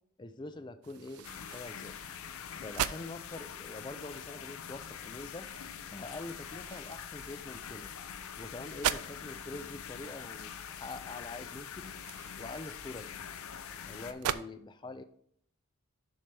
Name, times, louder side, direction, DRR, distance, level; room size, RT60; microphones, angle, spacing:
voice 1, 0.2-1.9 2.6-5.5 5.9-7.9 8.4-11.9 12.4-13.1 13.9-15.0, left 2 dB, 20° left, 11 dB, 0.4 m, -44 dB
sound 1, 0.8-14.4, right 10 dB, 85° right, 0.4 m, -42 dB
sound 2, 1.2-14.1, left 8 dB, 75° left, 0.6 m, -44 dB
7.6 x 5.5 x 3.3 m, 0.64 s
head